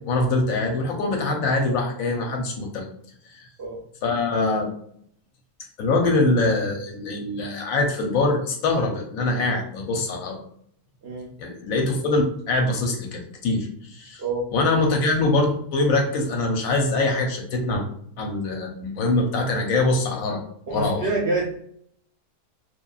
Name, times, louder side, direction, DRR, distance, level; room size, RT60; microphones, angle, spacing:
voice 1, 0.0-2.8 3.3-3.5 4.0-4.7 5.8-10.4 11.4-14.2 14.5-17.8 18.2-20.4 20.7-21.1, left 2 dB, 70° left, 1 dB, 0.9 m, -23 dB
voice 2, 20.7-21.5, right 2 dB, 65° right, -4 dB, 0.6 m, -26 dB
2.9 x 2.3 x 2.3 m, 0.65 s
omnidirectional pair, 1.6 m